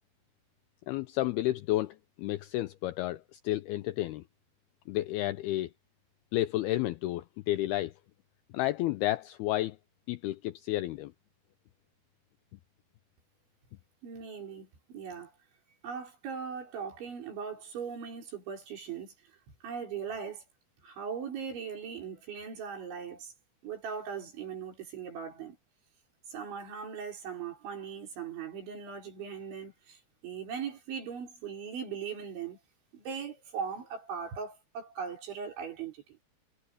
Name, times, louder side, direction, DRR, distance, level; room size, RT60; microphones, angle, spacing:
voice 1, 0.9-4.2 4.9-5.7 6.3-7.9 8.5-9.8 10.1-11.1, left 15 dB, 90° left, 2.2 m, -31 dB
voice 2, 14.0-15.3 15.8-19.4 19.6-20.4 20.8-23.3 23.6-25.6 26.3-32.6 32.9-36.2, right 6 dB, 80° right, 7.8 m, -39 dB
omnidirectional pair, 5.2 m